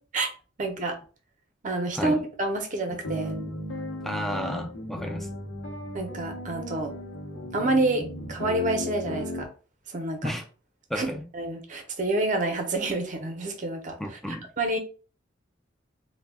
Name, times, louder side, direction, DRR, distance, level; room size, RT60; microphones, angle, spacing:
voice 1, 0.6-1.0 1.6-3.4 5.9-6.9 7.5-9.5 9.9-10.2 10.9-14.0 14.6-14.8, right 2 dB, 45° right, 0.6 m, -28 dB
sound 1, 2.9-9.5, left 1 dB, 75° left, 0.8 m, -35 dB
voice 2, 4.0-5.3 10.2-10.5 10.9-11.2 14.0-14.5, equal, ahead, 0.4 m, -32 dB
2.2 x 2.1 x 3.3 m
head